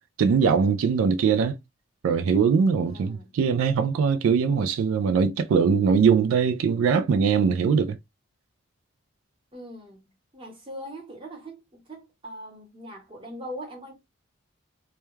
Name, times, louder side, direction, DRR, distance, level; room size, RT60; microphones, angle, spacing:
voice 1, 0.2-1.6 2.0-8.0, right 6 dB, 85° right, 0.3 m, -21 dB
voice 2, 2.8-3.3 9.5-13.9, equal, 25° right, 0.9 m, -41 dB
2.2 x 2.2 x 3.0 m
head